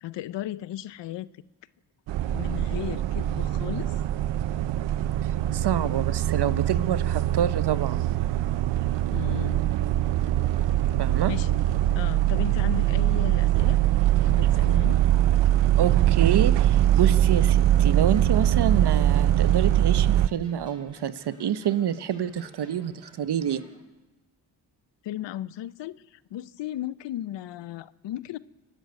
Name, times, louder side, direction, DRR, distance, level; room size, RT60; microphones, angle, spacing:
voice 1, 0.0-1.3 2.2-3.9 9.1-9.7 11.3-11.5 11.9-13.8 14.2-15.0 25.0-28.4, left 13 dB, 90° left, 0.7 m, -35 dB
sound 1, 2.1-20.3, right 12 dB, 85° right, 0.6 m, -22 dB
sound 2, 5.3-23.8, right 1 dB, 10° right, 7.1 m, -53 dB
voice 2, 5.5-8.0 11.0-11.3 15.8-23.6, right 9 dB, 70° right, 1.1 m, -27 dB
23.0 x 12.0 x 9.4 m
cardioid pair, 80°, 42 cm